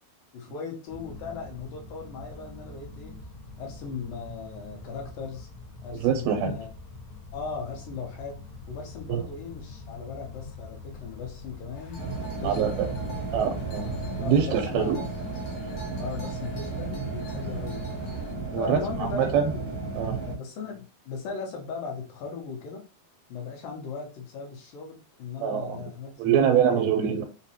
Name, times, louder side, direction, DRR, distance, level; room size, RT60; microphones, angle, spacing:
voice 1, 0.3-3.1 3.6-5.5 5.8-6.7 7.3-8.4 8.7-12.0 12.4-12.7 13.0-13.1 14.2-15.1 16.0-18.0 18.6-19.6 20.2-22.8 23.3-26.9, left 5 dB, 70° left, 0 dB, 2.4 m, -38 dB
sound 1, 0.9-14.1, left 2 dB, 55° left, 1.2 m, -44 dB
voice 2, 5.9-6.6 9.1-9.2 12.4-12.9 13.3-13.9 14.2-15.0 18.5-19.4 19.9-20.2 25.4-25.8 26.2-27.2, right 8 dB, 90° right, 3 dB, 2.5 m, -24 dB
sound 2, 11.7-18.3, right 1 dB, 90° left, 1.4 m, -49 dB
sound 3, 12.0-20.3, right 3 dB, 65° right, 0.8 m, -34 dB
6.0 x 2.2 x 2.8 m, 0.33 s
omnidirectional pair, 4.3 m